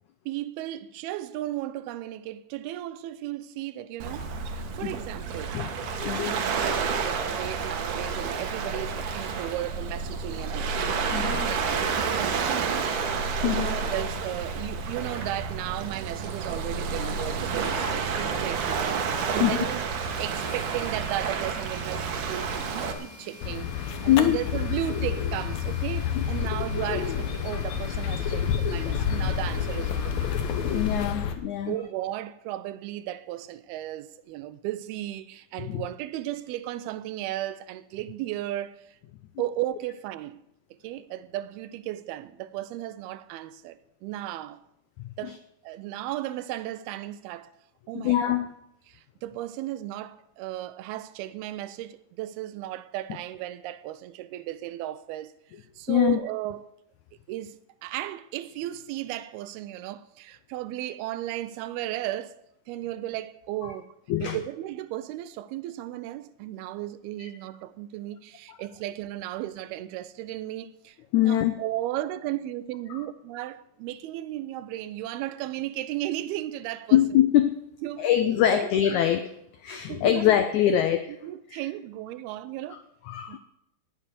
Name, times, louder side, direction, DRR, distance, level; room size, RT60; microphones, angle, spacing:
voice 1, 0.3-5.6 6.2-10.8 11.2-12.9 13.4-19.9 20.2-30.3 31.7-39.0 39.4-40.4 40.8-44.6 45.2-45.4 45.6-47.5 47.9-48.4 48.9-55.3 55.8-56.6 57.3-57.6 57.8-62.4 62.7-63.9 64.2-71.0 71.2-77.0 77.8-78.1 78.5-79.0 79.9-80.4 80.7-80.8 81.2-82.8 83.3-83.4, right 14 dB, 90° right, 2.6 m, -35 dB
Waves surf, 4.0-22.9, right 5 dB, 65° right, 2.5 m, -30 dB
voice 2, 6.0-6.4 11.1-11.5 13.4-13.7 17.6-18.0 19.4-19.6 24.1-24.4 26.1-26.2 30.6-31.8 35.6-35.8 45.0-45.4 47.9-48.6 55.9-56.2 64.1-64.4 67.2-67.3 71.1-71.5 72.9-73.0 76.9-77.5 78.0-79.3 79.6-81.0 81.5-81.6 82.7-82.8 83.1-83.4, left 12 dB, 90° left, 1.7 m, -24 dB
sound 1, 20.3-31.1, left 1 dB, 25° left, 3.9 m, -47 dB
sound 2, 23.4-31.4, left 7 dB, 65° left, 1.8 m, -29 dB
18.5 x 7.5 x 6.8 m
omnidirectional pair, 4.4 m